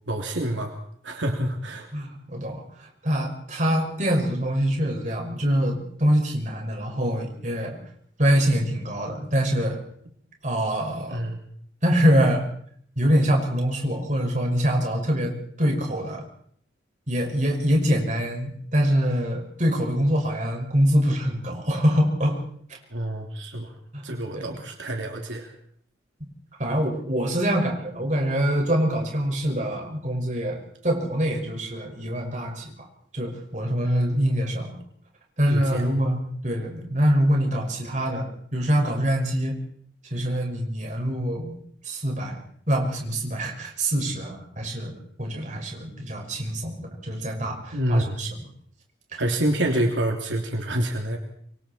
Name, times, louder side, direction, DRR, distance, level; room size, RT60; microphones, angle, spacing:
voice 1, 0.1-0.8 1.0-1.9 11.1-11.4 22.9-23.7 24.0-25.5 35.5-35.9 47.7-48.2 49.2-51.2, right 1 dB, 85° right, 2 dB, 3.1 m, -27 dB
voice 2, 1.9-7.8 8.2-9.8 10.4-11.2 11.8-12.4 13.0-16.2 17.1-22.4 23.9-24.6 26.6-32.9 33.1-34.8 35.4-39.6 40.1-41.6 41.8-42.4 42.7-44.9 45.2-48.3 49.1-49.2, equal, 40° right, 1 dB, 5.9 m, -24 dB
26.5 x 23.5 x 4.5 m, 0.63 s
head